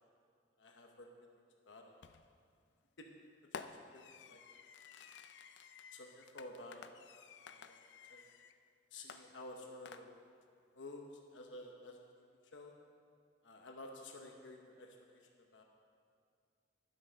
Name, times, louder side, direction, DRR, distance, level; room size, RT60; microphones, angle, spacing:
voice 1, 0.6-1.1 1.7-1.9 3.0-3.1 3.5-4.6 5.9-6.9 7.5-7.7 8.1-8.2 8.9-10.1 10.7-12.0 12.5-12.7 13.4-15.6, left 2 dB, 80° left, 2 dB, 0.9 m, -52 dB
Fireworks, 2.0-2.4 3.5-8.6 9.1-10.4, left 6 dB, 65° left, 0.4 m, -53 dB
11.5 x 7.8 x 5.1 m, 2.3 s
head